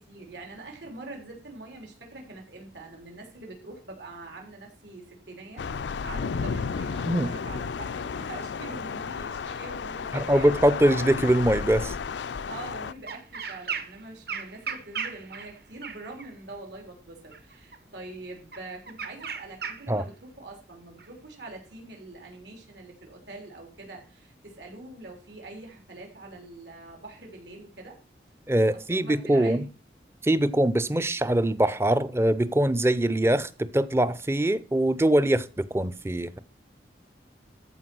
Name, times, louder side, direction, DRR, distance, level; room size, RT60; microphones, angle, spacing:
voice 1, 0.1-10.5 12.3-28.0 28.9-29.7 30.8-31.1, right 2 dB, 75° right, 3.4 m, -44 dB
Thunder / Rain, 5.6-12.9, left 5 dB, 75° left, 0.4 m, -33 dB
voice 2, 10.1-11.9 19.9-20.0 28.5-29.7 30.2-36.4, right 1 dB, 15° right, 0.5 m, -23 dB
sound 1, 13.1-14.0 14.3-16.3 17.3-17.8 18.5-20.0 21.0-21.1, right 6 dB, 60° right, 1.3 m, -36 dB
14.0 x 4.8 x 6.0 m
head